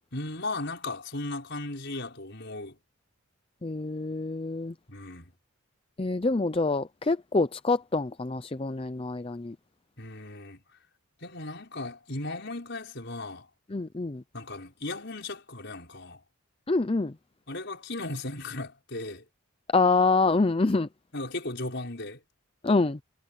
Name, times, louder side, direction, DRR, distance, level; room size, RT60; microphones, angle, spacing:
voice 1, 0.1-2.8 4.9-5.3 10.0-10.6 11.2-13.5 14.3-16.2 17.5-19.2 21.1-22.2, left 2 dB, 55° left, 6.2 m, -36 dB
voice 2, 3.6-4.7 6.0-9.6 13.7-14.2 16.7-17.1 19.7-20.9 22.6-23.0, left 3 dB, 25° left, 0.5 m, -26 dB
head